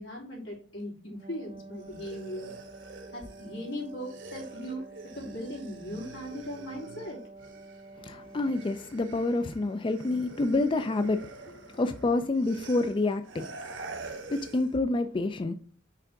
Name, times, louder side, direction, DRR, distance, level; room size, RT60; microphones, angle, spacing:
voice 1, 0.0-2.5 3.1-4.8 5.1-7.2, equal, 85° left, 3.1 m, -38 dB
Wind instrument woodwind instrument, 1.1-9.1, right 2 dB, 30° right, 0.6 m, -49 dB
sound 1, 1.7-8.0 8.2-14.8, right 3 dB, 70° right, 1.3 m, -47 dB
voice 2, 8.0-13.6 14.3-15.5, left 2 dB, 25° left, 0.4 m, -28 dB
5.8 x 3.6 x 5.8 m
head